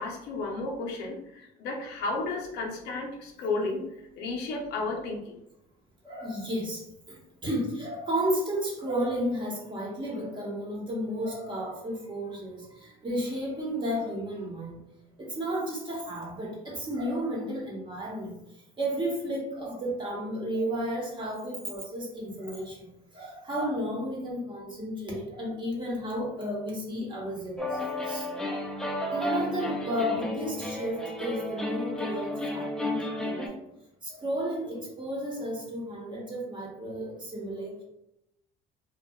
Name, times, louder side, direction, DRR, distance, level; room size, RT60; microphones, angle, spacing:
voice 1, 0.0-5.4, left 3 dB, 85° left, 0 dB, 0.6 m, -33 dB
voice 2, 6.0-14.8 15.2-18.4 18.8-28.8 29.1-33.6 34.0-37.8, equal, 30° right, -3 dB, 0.9 m, -33 dB
sound 1, 27.6-33.5, left 1 dB, 5° left, 0.3 m, -32 dB
2.6 x 2.2 x 2.2 m, 0.84 s
cardioid pair, 110°, 17 cm